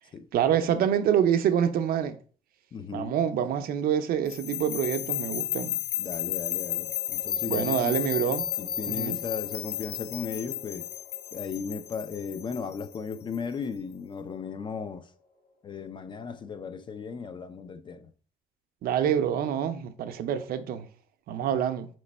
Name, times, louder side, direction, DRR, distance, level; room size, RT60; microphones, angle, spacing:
voice 1, 0.3-2.2 2.9-5.8 7.5-8.4 8.9-9.2 18.8-20.9 21.3-21.9, right 9 dB, 60° right, 0.5 m, -26 dB
voice 2, 2.7-3.1 6.0-8.0 8.6-10.9 11.3-15.1 15.6-18.1 21.5-21.6, left 6 dB, 30° left, 0.3 m, -36 dB
sound 1, 2.9-3.7 6.0-17.3, left 4 dB, 55° left, 1.8 m, -51 dB
sound 2, 4.3-13.4, left 12 dB, 70° left, 0.7 m, -33 dB
3.2 x 3.1 x 4.1 m
cardioid pair, 110°, 17 cm